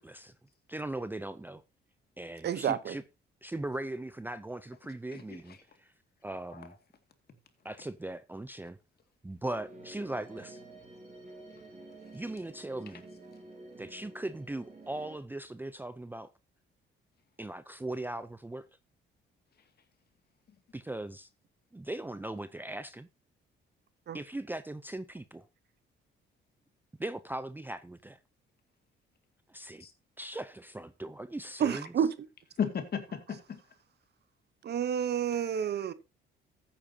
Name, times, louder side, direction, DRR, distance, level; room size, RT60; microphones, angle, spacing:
voice 1, 0.0-0.3 0.7-1.6 2.2-3.0 3.4-5.9 6.2-6.7 7.6-8.8 9.2-10.6 12.1-13.0 13.8-16.3 17.4-18.7 20.7-21.3 21.7-23.1 24.1-25.5 27.0-28.2 29.5-29.9 30.2-32.1, right 1 dB, 10° right, 0.6 m, -39 dB
voice 2, 2.4-2.9 24.1-24.2 31.6-32.1 34.6-35.9, right 8 dB, 55° right, 0.9 m, -29 dB
voice 3, 5.1-5.6 6.5-6.7 29.8-29.9 32.6-33.6 35.3-35.9, left 7 dB, 50° left, 2.2 m, -36 dB
sound 1, 9.5-15.2, right 2 dB, 35° right, 4.5 m, -50 dB
14.5 x 8.8 x 2.8 m
cardioid pair, 90°, 20 cm